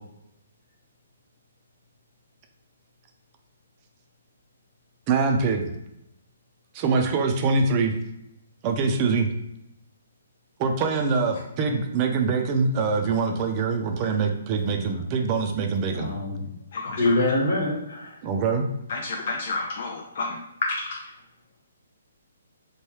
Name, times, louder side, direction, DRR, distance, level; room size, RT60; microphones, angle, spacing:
voice 1, 5.1-5.7 6.7-8.0 8.6-9.3 10.6-16.1 18.2-18.7, right 4 dB, 30° right, 4 dB, 0.4 m, -24 dB
voice 2, 14.6-15.0 15.9-16.6 16.8-18.2, left 2 dB, 75° left, -2 dB, 1.3 m, -26 dB
voice 3, 16.7-17.2 18.9-21.0, left 3 dB, 55° left, 1 dB, 0.4 m, -30 dB
3.1 x 2.2 x 3.1 m, 0.85 s
hypercardioid pair, 150°, 0 cm